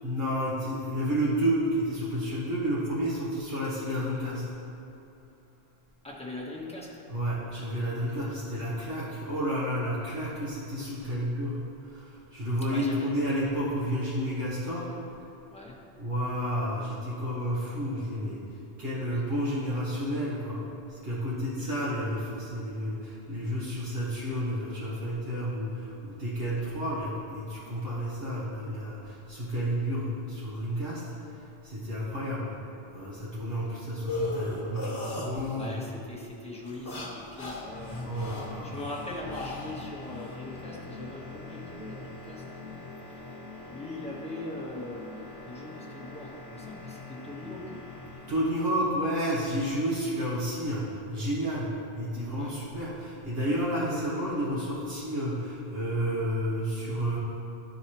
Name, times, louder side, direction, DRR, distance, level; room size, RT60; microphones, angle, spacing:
voice 1, 0.0-4.5 7.1-14.9 15.9-18.4 18.8-20.6 20.9-32.5 32.9-35.8 38.0-38.8 48.3-57.2, equal, 65° right, -9 dB, 1.6 m, -31 dB
voice 2, 6.0-7.0 12.7-13.1 15.5-15.7 19.1-19.2 21.6-21.8 35.5-38.0 38.3-42.4 43.0-43.2 43.7-47.8 52.4-52.5, left 1 dB, 5° left, -4 dB, 1.0 m, -41 dB
sound 1, 34.1-35.8 36.7-40.3, left 2 dB, 30° left, 1.5 m, -36 dB
sound 2, 37.6-48.7, left 3 dB, 30° right, 1.2 m, -44 dB
11.5 x 4.8 x 2.9 m, 2.8 s
omnidirectional pair, 1.1 m